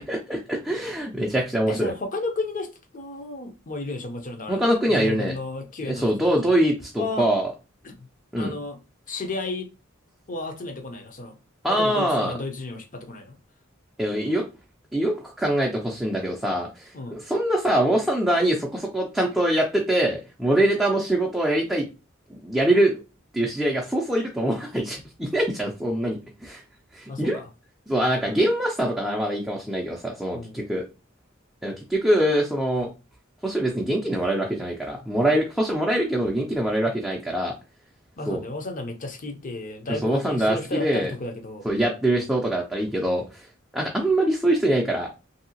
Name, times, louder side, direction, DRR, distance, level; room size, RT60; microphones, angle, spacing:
voice 1, 0.0-1.9 4.5-5.3 5.8-7.5 8.3-8.5 11.6-12.4 14.0-14.4 14.9-21.9 22.3-23.0 23.3-26.6 26.9-27.4 27.9-30.8 31.6-32.9 33.4-37.5 38.3-38.4 40.0-41.1 41.6-43.5 43.7-45.1, right 1 dB, ahead, 0.5 m, -24 dB
voice 2, 1.7-6.5 7.0-7.3 7.8-8.0 8.4-8.8 9.1-9.7 10.3-11.4 11.7-13.3 16.9-17.2 27.1-27.5 30.3-30.6 38.2-41.7, left 2 dB, 40° left, 0.7 m, -33 dB
2.9 x 2.7 x 2.8 m
head